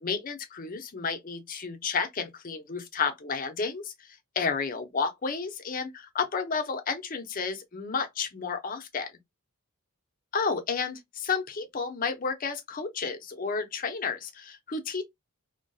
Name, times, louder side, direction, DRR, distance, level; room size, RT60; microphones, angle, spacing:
voice 1, 0.0-3.9 4.4-9.1 10.3-15.0, left 5 dB, 40° left, 0.5 m, -31 dB
2.6 x 2.2 x 2.2 m
head